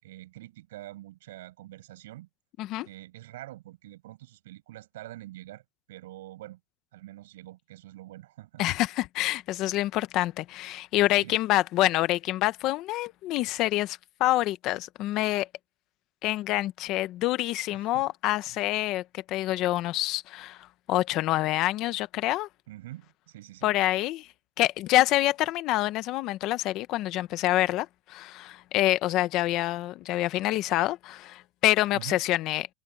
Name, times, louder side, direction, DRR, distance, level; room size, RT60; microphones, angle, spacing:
voice 1, 0.0-2.3 2.8-5.6 5.9-6.6 6.9-8.6 11.2-11.4 17.7-18.1 18.4-18.6 22.7-23.8 31.9-32.2, right 16 dB, 70° right, 7.3 m, -45 dB
voice 2, 8.6-15.5 16.2-22.5 23.6-24.3 24.6-32.7, left 16 dB, 35° left, 0.9 m, -27 dB
supercardioid pair, 170°, 0 cm